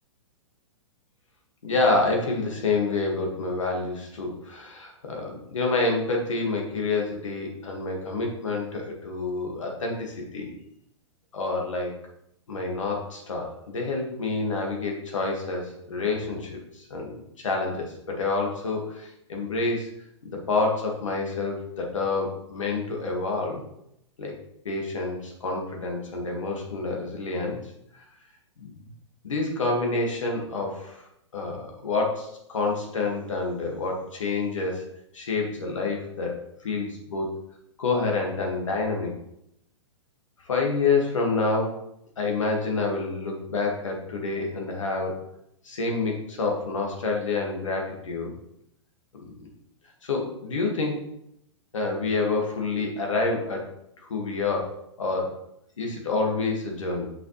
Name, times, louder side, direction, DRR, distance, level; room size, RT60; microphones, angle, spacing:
voice 1, 1.6-10.5 11.3-12.0 12.5-19.9 20.2-23.6 24.2-24.3 24.7-27.6 28.6-28.9 29.2-31.1 31.3-34.8 35.1-37.3 37.8-39.1 40.5-41.8 42.2-45.1 45.6-48.3 49.2-49.3 50.0-51.0 51.7-53.7 54.1-55.4 55.8-57.0, left 3 dB, 85° left, 0 dB, 1.9 m, -28 dB
6.4 x 5.1 x 3.2 m, 0.77 s
hypercardioid pair, 120°, 16 cm